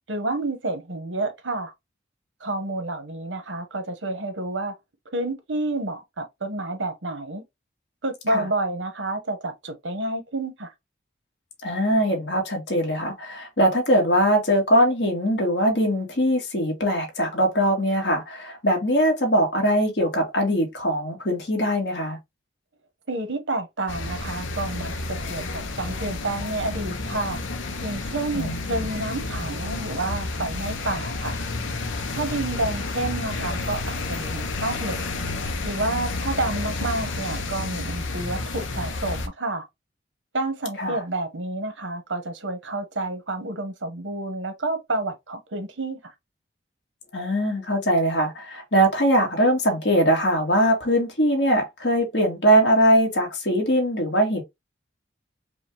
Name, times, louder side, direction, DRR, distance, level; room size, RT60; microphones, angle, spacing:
voice 1, 0.1-1.7 2.4-4.7 5.1-7.4 8.0-10.7 23.1-24.9 25.3-27.4 27.8-31.4 32.1-35.0 35.6-39.6 40.3-46.0, right 2 dB, 80° right, 1.2 m, -29 dB
voice 2, 11.6-22.2 28.3-28.9 40.8-41.0 47.1-54.4, equal, 65° left, 1.7 m, -21 dB
sound 1, 23.9-39.3, left 3 dB, 85° left, 0.8 m, -30 dB
5.0 x 2.3 x 3.4 m
head